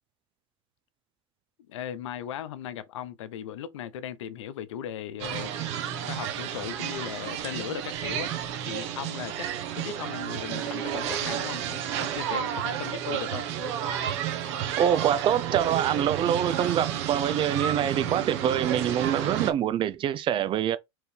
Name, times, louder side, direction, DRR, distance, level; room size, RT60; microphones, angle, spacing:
voice 1, 1.7-5.5 5.9-8.3 8.7-9.5 9.7-13.5, left 10 dB, 90° left, 0.6 m, -37 dB
sound 1, 5.2-19.5, right 10 dB, 70° right, 1.2 m, -31 dB
voice 2, 14.8-20.8, right 10 dB, 35° right, 0.5 m, -25 dB
4.5 x 2.7 x 3.3 m
supercardioid pair, 115°, 15 cm